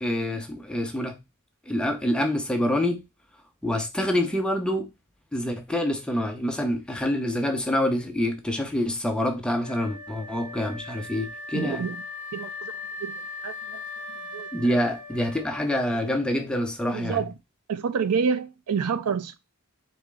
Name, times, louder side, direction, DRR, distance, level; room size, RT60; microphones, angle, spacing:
voice 1, 0.0-1.2 1.7-3.0 3.6-4.9 5.3-11.9 14.5-17.2, left 1 dB, 5° left, 0.6 m, -26 dB
Wind instrument woodwind instrument, 9.6-16.6, left 3 dB, 35° left, 1.0 m, -39 dB
voice 2, 11.5-12.0 12.3-12.7 13.0-13.1 13.4-13.8 14.3-14.5 16.9-17.3 17.7-19.4, right 6 dB, 90° right, 0.5 m, -28 dB
4.1 x 3.4 x 3.3 m
head